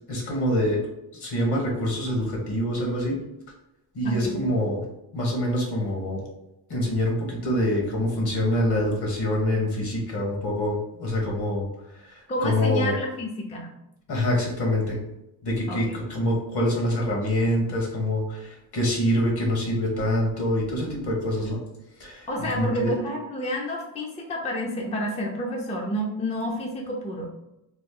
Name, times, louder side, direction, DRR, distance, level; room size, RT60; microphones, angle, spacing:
voice 1, 0.1-0.8 1.2-3.2 3.9-4.9 5.1-6.2 6.7-11.7 11.9-12.9 14.1-15.0 15.4-21.6 22.0-22.3 22.5-22.9, left 1 dB, 55° left, -1 dB, 1.3 m, -25 dB
voice 2, 4.0-4.4 12.3-13.7 15.7-16.0 22.3-27.3, equal, 15° left, 0 dB, 0.4 m, -29 dB
3.1 x 2.5 x 3.6 m, 0.87 s
cardioid pair, 120°, 47 cm